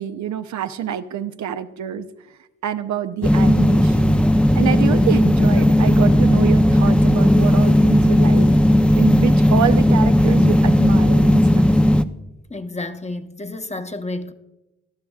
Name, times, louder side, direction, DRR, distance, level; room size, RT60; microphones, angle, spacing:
voice 1, 0.0-4.2 4.5-8.5 8.9-11.6, right 10 dB, 70° right, 0.6 m, -27 dB
Air Conditioner on a Camping place, 3.2-12.0, left 1 dB, 5° left, 0.5 m, -15 dB
voice 2, 12.5-14.3, left 2 dB, 20° left, 0.9 m, -30 dB
18.5 x 12.5 x 2.4 m
supercardioid pair, 45°, 30 cm